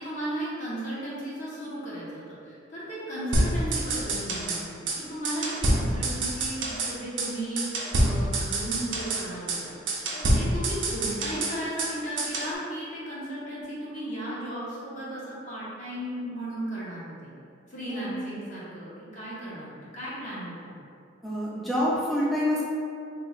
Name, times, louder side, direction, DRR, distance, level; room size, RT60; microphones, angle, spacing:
voice 1, 0.0-9.7 10.1-17.3 17.7-20.7, right 1 dB, 35° left, -9 dB, 0.7 m, -35 dB
sound 1, 3.3-4.6 4.9-5.0 5.2-6.9 7.2-7.3 7.6-9.2 9.5-9.6 9.9-11.9 12.2-12.5, right 1 dB, 70° right, 0.5 m, -26 dB
voice 2, 17.9-18.3 21.2-22.6, left 1 dB, ahead, -7 dB, 0.5 m, -27 dB
3.0 x 2.2 x 3.8 m, 2.4 s
head